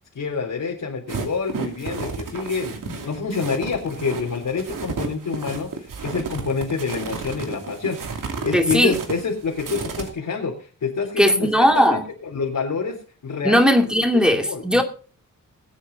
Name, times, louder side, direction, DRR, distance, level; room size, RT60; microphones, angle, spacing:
voice 1, 0.2-5.7 6.0-10.5 10.8-11.5 11.7-13.0 13.2-13.6 14.3-14.8, left 5 dB, 80° left, 3.6 m, -27 dB
sound 1, 1.1-10.1, right 5 dB, 85° right, 2.6 m, -32 dB
voice 2, 8.5-9.0 11.2-12.0 13.4-14.8, equal, 5° right, 2.4 m, -17 dB
21.0 x 8.7 x 4.0 m
wide cardioid pair, 120°, 32 cm